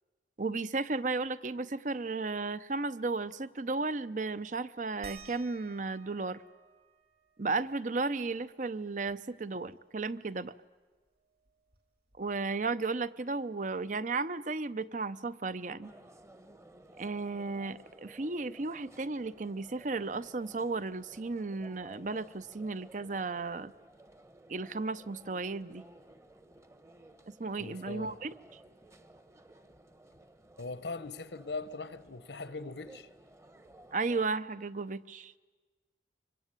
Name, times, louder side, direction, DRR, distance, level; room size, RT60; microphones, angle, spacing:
voice 1, 0.4-6.4 7.4-10.5 12.2-15.9 17.0-23.7 24.5-25.8 27.3-28.3 33.9-35.3, right 3 dB, 45° right, 0.7 m, -34 dB
sound 1, 5.0-10.2 10.5-10.6 10.9-12.7 14.0-14.1 14.8-14.9, right 5 dB, 60° right, 4.5 m, -57 dB
sound 2, 15.8-34.3, right 1 dB, 15° right, 1.1 m, -56 dB
voice 2, 27.4-28.2 30.6-33.1, left 3 dB, 80° left, 1.1 m, -41 dB
25.0 x 23.5 x 9.1 m
head